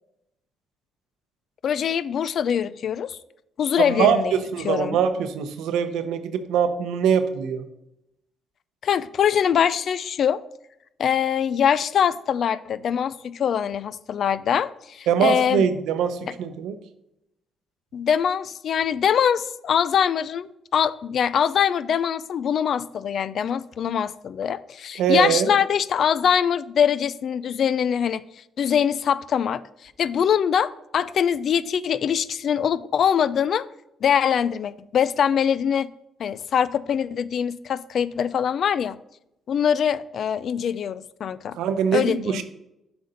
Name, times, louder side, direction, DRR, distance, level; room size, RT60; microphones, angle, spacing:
voice 1, 1.6-3.2 3.6-4.3 4.6-5.0 8.8-10.4 11.0-15.6 17.9-28.2 28.6-33.6 34.0-35.9 36.2-39.0 39.5-41.6 41.9-42.4, left 8 dB, 60° left, 0.3 m, -23 dB
voice 2, 3.8-7.6 15.1-16.8 25.0-25.6 41.5-42.4, right 7 dB, 90° right, 0.7 m, -23 dB
7.8 x 5.2 x 3.9 m
cardioid pair, 90°, 0 cm